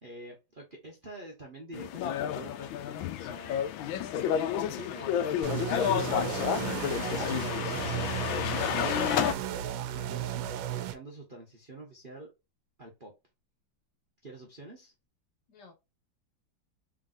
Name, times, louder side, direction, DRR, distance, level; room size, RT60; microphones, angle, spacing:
voice 1, 0.0-2.7 3.2-3.7 4.8-5.7 6.0-9.7 9.9-12.3 12.8-13.1 14.2-14.9, right 1 dB, 40° right, 0.8 m, -46 dB
sound 1, 1.7-9.3, left 9 dB, 85° left, 1.3 m, -30 dB
sound 2, 5.4-10.9, right 12 dB, 85° right, 1.4 m, -34 dB
voice 2, 15.5-15.7, left 5 dB, 60° left, 1.9 m, -55 dB
3.7 x 3.5 x 2.6 m
omnidirectional pair, 2.1 m